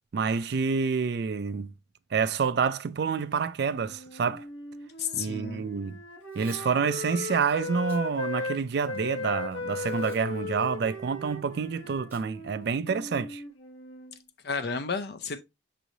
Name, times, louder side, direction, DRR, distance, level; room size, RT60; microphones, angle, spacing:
voice 1, 0.1-1.7 2.1-4.5 5.1-6.0 6.3-13.4, right 5 dB, 55° right, 0.3 m, -28 dB
Wind instrument woodwind instrument, 3.7-8.6 8.8-14.2, left 3 dB, 85° left, 0.9 m, -37 dB
voice 2, 5.0-5.7 14.4-15.4, left 5 dB, 55° left, 0.5 m, -32 dB
Packing tape duct tape / Tearing, 6.2-6.7 7.1-7.2 7.8-8.0 8.5-9.1 9.9-10.2 10.5-10.6 12.1-12.2 12.6-12.7 13.0-13.3, right 2 dB, 10° right, 1.4 m, -52 dB
6.0 x 3.1 x 2.6 m
head